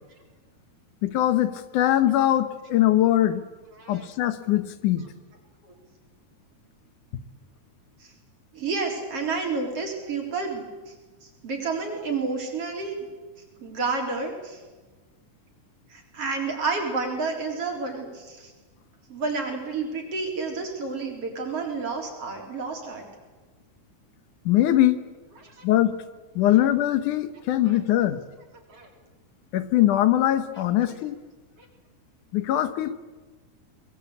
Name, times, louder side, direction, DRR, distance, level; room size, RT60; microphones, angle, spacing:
voice 1, 1.0-3.4 3.9-5.1 24.5-25.0 25.6-26.0 26.4-28.2 29.5-31.2 32.3-32.9, left 13 dB, 80° left, 12 dB, 2.6 m, -22 dB
voice 2, 8.5-10.9 11.2-12.9 13.6-14.6 15.9-18.5 19.1-23.0 25.4-25.6 26.5-26.6 27.7-27.8 28.7-28.9, right 4 dB, 50° right, 2 dB, 4.8 m, -30 dB
23.5 x 21.0 x 8.5 m, 1.3 s
omnidirectional pair, 3.5 m